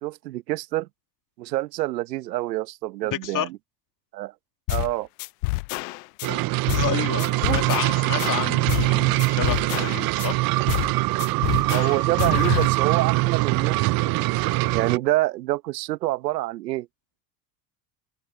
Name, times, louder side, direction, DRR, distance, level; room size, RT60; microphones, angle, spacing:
voice 1, 0.0-0.9 1.4-3.6 4.1-4.3 4.7-5.1 7.2-7.6 11.7-14.3 14.7-16.9, right 17 dB, 85° right, 1.1 m, -27 dB
voice 2, 3.1-3.5 6.3-6.4 6.7-10.4, left 11 dB, 40° left, 2.9 m, -30 dB
sound 1, 4.7-4.9 5.2-6.3 6.7-6.9 7.2-8.9 9.2-10.3 10.7-10.9 11.2-12.7, left 24 dB, 70° left, 0.9 m, -28 dB
sound 2, 6.2-15.0, right 21 dB, 50° right, 0.7 m, -23 dB
open air
hypercardioid pair, 90°, 48 cm